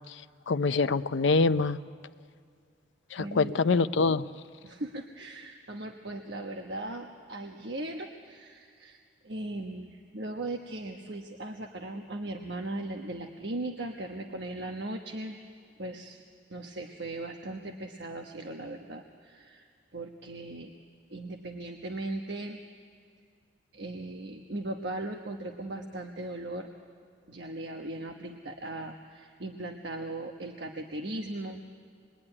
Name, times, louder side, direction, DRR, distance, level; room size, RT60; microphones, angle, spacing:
voice 1, 0.5-1.8 3.1-4.3, left 4 dB, 85° left, 13 dB, 0.6 m, -25 dB
voice 2, 3.2-3.6 4.6-15.4 15.8-16.2 16.5-20.7 21.1-22.6 23.7-26.7 27.3-31.6, right 2 dB, 70° right, 3 dB, 1.2 m, -38 dB
26.0 x 21.0 x 9.9 m, 2.1 s
head